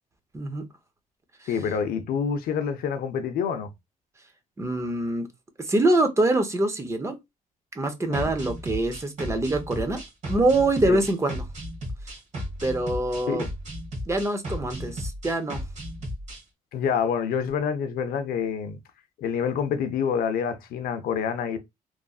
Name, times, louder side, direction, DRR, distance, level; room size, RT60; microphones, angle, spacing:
voice 1, 0.3-0.7 4.6-5.3 5.6-7.2 7.8-10.0 10.3-11.4 12.6-13.4 14.1-15.6, right 2 dB, 20° right, 0.5 m, -24 dB
voice 2, 1.5-3.7 8.1-8.3 10.9-11.0 13.3-13.5 16.7-18.8 19.2-21.6, left 7 dB, 85° left, 0.5 m, -27 dB
sound 1, 8.1-16.4, equal, 50° right, 1.2 m, -35 dB
3.0 x 2.5 x 2.3 m
cardioid pair, 125°, 15 cm